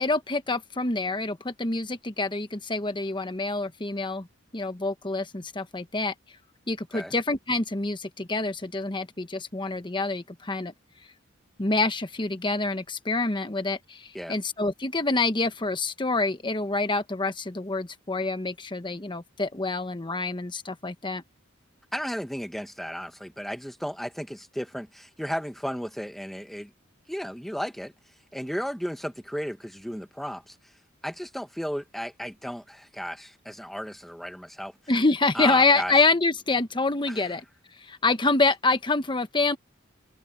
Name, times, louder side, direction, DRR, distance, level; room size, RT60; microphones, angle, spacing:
voice 1, 0.0-4.3 4.5-6.1 6.7-10.7 11.6-21.2 34.9-37.4 37.8-39.6, left 3 dB, 25° left, 1.2 m, -26 dB
voice 2, 21.9-26.7 27.1-27.9 28.3-30.5 31.0-34.7 35.3-35.9 37.1-37.2, equal, ahead, 1.4 m, -34 dB
open air
head